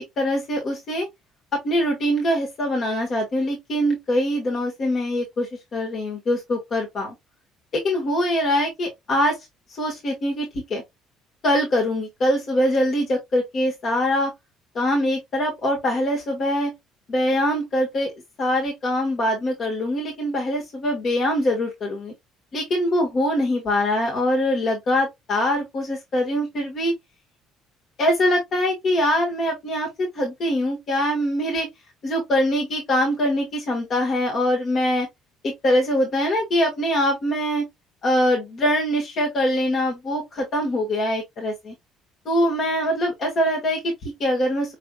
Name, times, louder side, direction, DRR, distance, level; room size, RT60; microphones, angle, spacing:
voice 1, 0.2-1.1 1.6-7.1 7.7-9.4 9.8-10.8 11.4-14.3 14.7-16.7 17.1-18.1 18.4-22.1 22.5-26.9 28.0-29.9 30.1-31.7 32.0-35.1 35.4-37.6 38.0-41.7 42.2-44.7, equal, 50° left, 1.6 m, -23 dB
5.3 x 3.2 x 2.3 m
hypercardioid pair, 65°, 0 cm